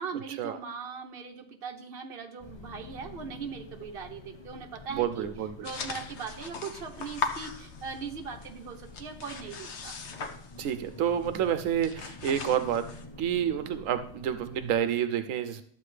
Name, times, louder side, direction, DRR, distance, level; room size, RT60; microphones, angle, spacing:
voice 1, 0.0-5.3 5.6-10.0, right 6 dB, 50° right, 3 dB, 1.1 m, -40 dB
sound 1, 2.4-14.8, left 3 dB, 30° left, 0.6 m, -48 dB
voice 2, 5.0-5.5 10.6-12.8 13.2-15.6, right 9 dB, 85° right, 10 dB, 1.0 m, -29 dB
sound 2, 5.6-8.2 8.4-10.9 11.2-11.4 11.7-13.0, left 5 dB, 60° left, 1.2 m, -39 dB
12.5 x 7.7 x 3.3 m, 0.62 s
omnidirectional pair, 1.3 m